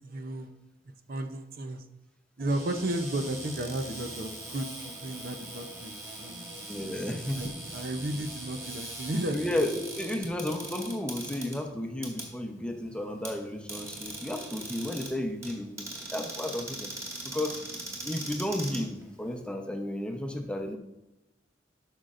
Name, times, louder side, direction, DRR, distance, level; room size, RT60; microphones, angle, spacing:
voice 1, 0.0-0.5 1.1-1.8 2.4-6.4 7.3-9.7, right 1 dB, 50° right, 7 dB, 0.6 m, -34 dB
Cupboard open or close, 2.4-19.5, right 1 dB, 15° right, 2.3 m, -41 dB
voice 2, 6.7-7.6 9.3-16.9 17.3-17.6 18.0-20.8, left 1 dB, 5° left, 3 dB, 0.7 m, -33 dB
12.5 x 6.4 x 2.5 m, 0.95 s
head